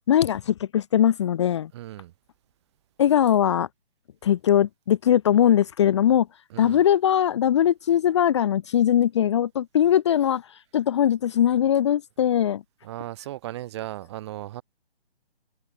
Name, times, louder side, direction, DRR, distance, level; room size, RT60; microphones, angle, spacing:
voice 1, 0.1-1.7 3.0-3.7 4.2-6.3 6.6-10.4 10.7-12.6, left 10 dB, 25° left, 0.9 m, -20 dB
voice 2, 1.7-2.1 6.5-6.8 12.8-14.6, right 14 dB, 25° right, 1.7 m, -36 dB
figure-of-eight pair, 145°, 33 cm